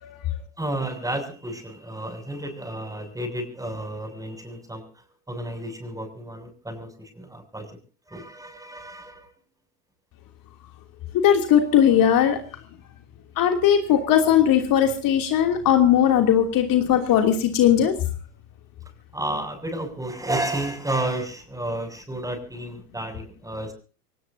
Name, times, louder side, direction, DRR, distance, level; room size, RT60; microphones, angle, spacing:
voice 1, 0.0-0.3 11.2-12.4 13.4-17.9, left 9 dB, 45° left, 4 dB, 3.0 m, -19 dB
voice 2, 0.6-4.8 5.3-7.7 8.1-9.3 19.1-23.7, right 1 dB, 5° right, 6 dB, 7.4 m, -31 dB
24.0 x 19.0 x 2.8 m, 0.37 s
hypercardioid pair, 85°, 46 cm